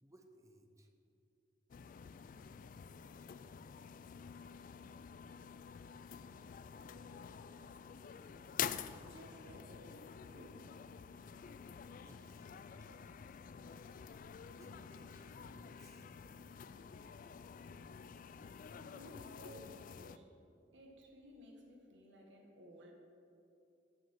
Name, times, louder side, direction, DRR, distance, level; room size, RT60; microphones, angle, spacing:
voice 1, 0.0-0.9 12.0-13.2 14.5-16.2, right 1 dB, 15° right, 4 dB, 0.9 m, -62 dB
sound 1, 1.7-20.2, left 8 dB, 45° left, 0.3 m, -48 dB
voice 2, 9.1-10.0 10.3-10.7 18.8-20.3 20.7-22.9, equal, 80° right, 1 dB, 1.3 m, -56 dB
12.0 x 5.3 x 7.5 m, 2.7 s
head